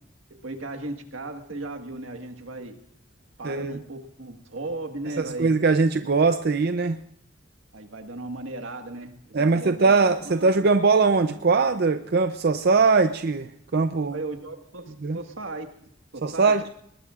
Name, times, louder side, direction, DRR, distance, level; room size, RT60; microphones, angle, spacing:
voice 1, 0.4-2.8 3.4-5.6 7.7-10.0 10.2-10.5 14.1-16.7, right 2 dB, 85° right, 4 dB, 1.7 m, -36 dB
voice 2, 3.4-3.8 5.2-7.0 9.3-14.2 15.0-15.2 16.2-16.6, right 4 dB, 55° right, 8 dB, 0.5 m, -21 dB
21.5 x 19.5 x 2.5 m, 0.71 s
head